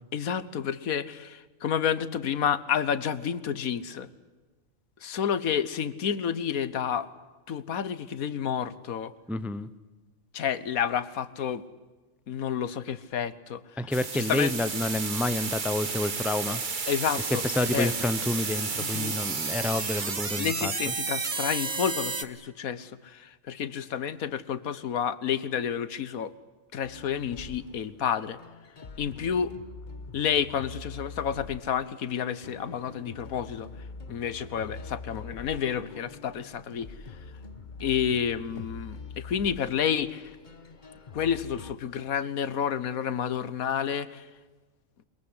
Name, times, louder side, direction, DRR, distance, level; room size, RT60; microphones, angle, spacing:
voice 1, 0.1-4.1 5.0-7.1 7.5-9.1 10.3-11.6 12.3-14.5 16.9-17.9 18.8-19.2 20.4-26.3 26.7-28.4 29.0-29.5 30.1-33.7 34.1-36.9 37.8-40.4 41.1-44.3, left 8 dB, 85° left, 16 dB, 1.5 m, -30 dB
voice 2, 9.3-9.7 13.8-16.6 17.3-20.7, left 2 dB, ahead, 13 dB, 0.6 m, -29 dB
sound 1, 13.9-22.2, right 5 dB, 35° right, 1.2 m, -32 dB
sound 2, 26.8-41.7, left 4 dB, 35° left, 1.2 m, -44 dB
22.5 x 22.0 x 9.8 m, 1.3 s
omnidirectional pair, 1.4 m